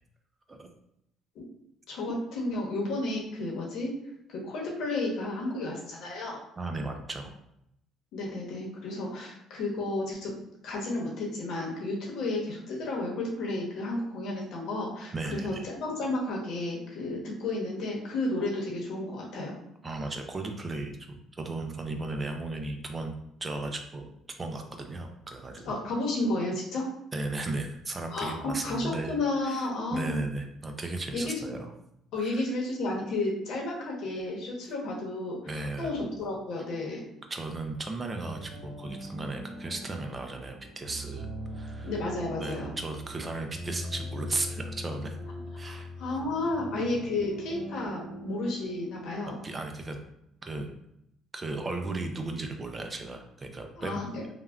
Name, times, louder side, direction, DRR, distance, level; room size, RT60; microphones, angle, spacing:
voice 1, 1.9-3.9 4.3-6.4 8.1-10.3 10.6-19.6 25.6-26.9 28.1-30.2 31.1-31.3 32.1-37.0 41.8-42.7 45.6-49.4 53.8-54.2, left 2 dB, 70° left, -2 dB, 0.9 m, -32 dB
voice 2, 6.6-7.4 15.1-15.6 19.8-23.2 23.4-24.1 24.4-25.7 27.1-29.2 29.4-31.7 32.2-32.5 35.5-36.0 37.3-41.3 41.5-41.9 42.4-45.2 45.6-45.9 49.2-50.0 50.4-50.7 51.3-54.0, right 2 dB, 25° right, 5 dB, 0.3 m, -35 dB
sound 1, 38.2-49.9, equal, 75° right, 0.8 m, -41 dB
3.4 x 2.2 x 2.3 m, 0.78 s
cardioid pair, 115°, 0 cm